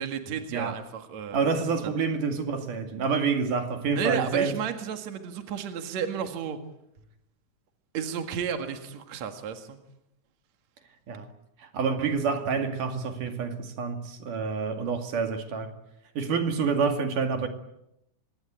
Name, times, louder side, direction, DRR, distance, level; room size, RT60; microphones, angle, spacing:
voice 1, 0.0-1.4 1.8-1.9 3.9-6.6 7.9-9.8, right 7 dB, 65° right, 3.1 m, -32 dB
voice 2, 1.3-4.5 11.1-11.3 11.6-15.7 16.2-17.5, right 5 dB, 85° right, 3.9 m, -28 dB
25.5 x 21.5 x 9.0 m
omnidirectional pair, 3.6 m